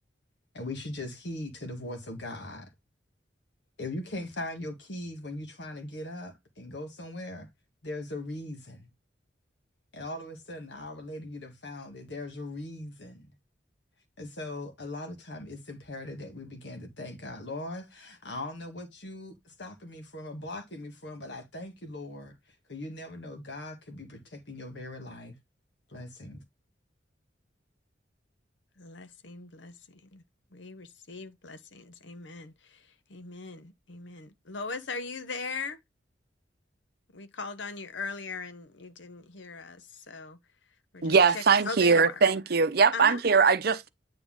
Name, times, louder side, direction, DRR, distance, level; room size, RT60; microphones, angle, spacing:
voice 1, 0.5-2.7 3.8-7.5 7.8-8.9 9.9-13.3 14.2-22.3 22.7-25.4 25.9-26.4, left 2 dB, 70° left, 1.8 m, -40 dB
voice 2, 28.8-30.2 30.5-35.8 37.1-40.4 40.9-42.2 42.9-43.2, left 4 dB, 85° left, 0.9 m, -40 dB
voice 3, 41.0-43.9, right 5 dB, 55° right, 0.6 m, -21 dB
9.3 x 3.4 x 3.7 m
head